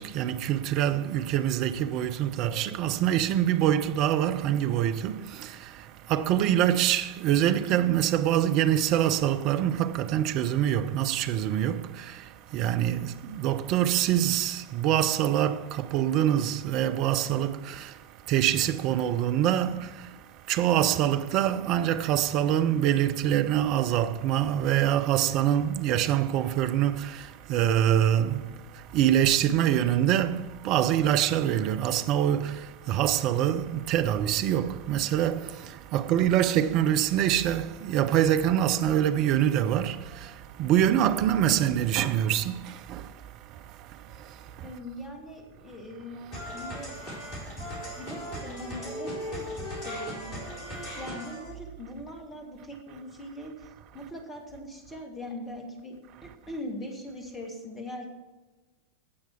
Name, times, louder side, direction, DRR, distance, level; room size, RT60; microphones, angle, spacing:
voice 1, 0.0-44.8 46.2-46.7 47.0-48.1 49.6-50.0 50.7-51.1 52.9-53.0 53.9-54.1, right 11 dB, 40° right, 0.6 m, -25 dB
voice 2, 44.6-47.0 48.0-50.6 50.9-56.0 56.2-58.1, left 1 dB, 15° left, 2.4 m, -41 dB
sound 1, 46.3-51.5, equal, 30° left, 4.4 m, -38 dB
17.5 x 6.0 x 4.6 m
figure-of-eight pair, 90°, 0 cm